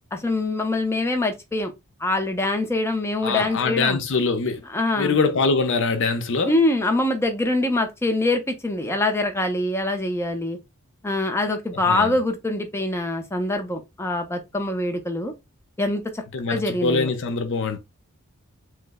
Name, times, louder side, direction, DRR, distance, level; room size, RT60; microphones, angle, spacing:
voice 1, 0.1-1.7 2.0-4.0 4.7-5.2 6.5-10.6 11.0-15.3 15.8-16.2 16.5-17.1, left 2 dB, 10° left, 0.5 m, -24 dB
voice 2, 3.2-4.6 5.0-6.6 11.7-12.1 16.3-17.8, left 4 dB, 55° left, 0.6 m, -23 dB
3.1 x 2.0 x 3.4 m
head